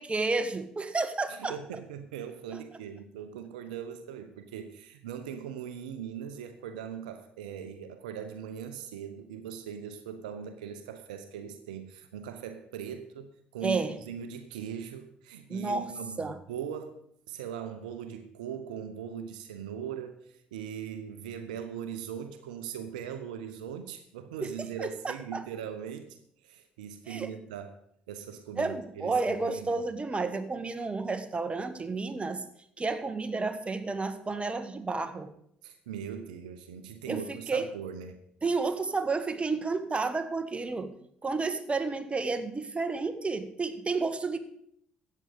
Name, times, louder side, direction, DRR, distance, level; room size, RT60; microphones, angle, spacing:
voice 1, 0.0-1.5 13.6-13.9 15.5-15.9 16.2-16.4 24.4-24.5 24.8-25.4 27.1-27.3 28.6-32.4 32.8-35.3 37.1-37.7 38.4-40.9 41.2-44.4, right 3 dB, 25° right, 9 dB, 1.5 m, -31 dB
voice 2, 1.3-17.0 17.3-26.2 26.4-27.7 28.1-29.8 35.6-38.2 38.6-38.7, right 8 dB, 80° right, 9 dB, 0.8 m, -40 dB
13.5 x 8.5 x 5.2 m, 0.70 s
hypercardioid pair, 50°, 4 cm